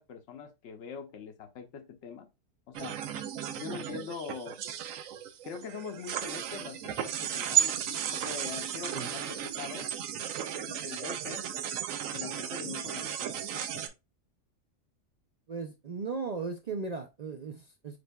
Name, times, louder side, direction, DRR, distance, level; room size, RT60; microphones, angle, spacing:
voice 1, 0.0-2.3 2.7-3.0 3.5-4.6 5.4-9.9 10.7-11.5 12.1-13.9, left 7 dB, 65° left, 0.9 m, -43 dB
sound 1, 2.7-13.9, right 10 dB, 90° right, 1.0 m, -34 dB
voice 2, 15.5-18.0, right 4 dB, 75° right, 0.3 m, -37 dB
5.0 x 4.5 x 2.2 m
omnidirectional pair, 1.4 m